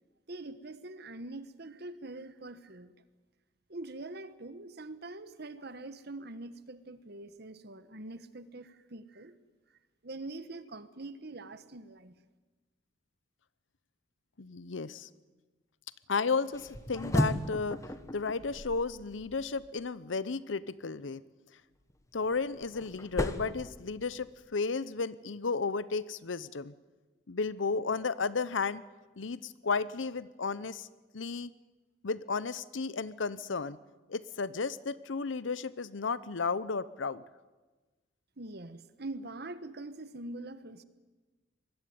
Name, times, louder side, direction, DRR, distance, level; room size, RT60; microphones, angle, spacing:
voice 1, 0.3-2.9 3.7-9.3 10.0-12.2 38.4-40.8, right 2 dB, 55° right, 13 dB, 1.3 m, -44 dB
voice 2, 14.4-15.1 16.1-17.8 18.1-21.2 22.1-26.7 27.3-28.8 29.2-30.9 31.1-31.5 32.0-33.8 34.1-37.2, left 4 dB, 80° left, 17 dB, 0.8 m, -33 dB
sound 1, 16.5-19.7 21.9-24.5, equal, 15° left, 1.3 m, -36 dB
25.0 x 20.5 x 9.5 m, 1.2 s
head